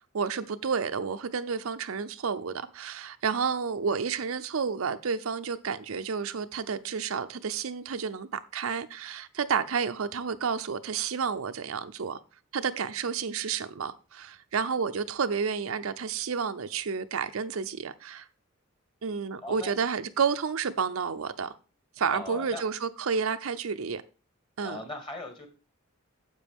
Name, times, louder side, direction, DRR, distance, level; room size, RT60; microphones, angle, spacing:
voice 1, 0.1-12.2 12.5-18.3 19.0-21.5 22.0-24.0 24.6-24.8, right 6 dB, 85° right, 0.6 m, -30 dB
voice 2, 19.4-19.7 22.1-22.6 24.6-25.5, left 2 dB, 25° left, 2.3 m, -39 dB
9.6 x 7.5 x 3.5 m
head